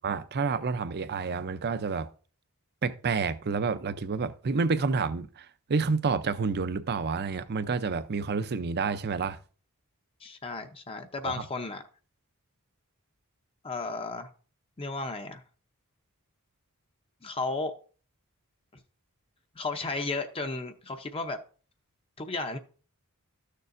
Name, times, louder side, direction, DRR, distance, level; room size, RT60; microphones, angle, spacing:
voice 1, 0.0-2.1 2.8-9.4 11.2-11.4, right 4 dB, 45° right, 0.5 m, -29 dB
voice 2, 10.2-11.8 13.6-14.3 14.8-15.4 17.2-17.7 19.6-21.4 22.2-22.6, left 3 dB, 25° left, 0.6 m, -34 dB
13.0 x 6.6 x 2.5 m
head